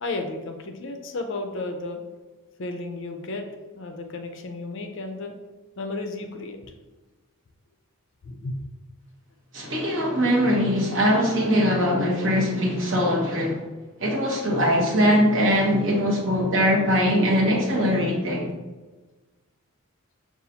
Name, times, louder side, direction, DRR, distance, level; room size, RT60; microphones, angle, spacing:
voice 1, 0.0-2.0 2.6-5.3 5.8-6.7 8.2-8.6, left 2 dB, 55° left, 5 dB, 0.4 m, -33 dB
voice 2, 9.5-13.6 14.0-18.5, equal, 55° right, -2 dB, 1.0 m, -21 dB
5.3 x 2.4 x 2.8 m, 1.2 s
head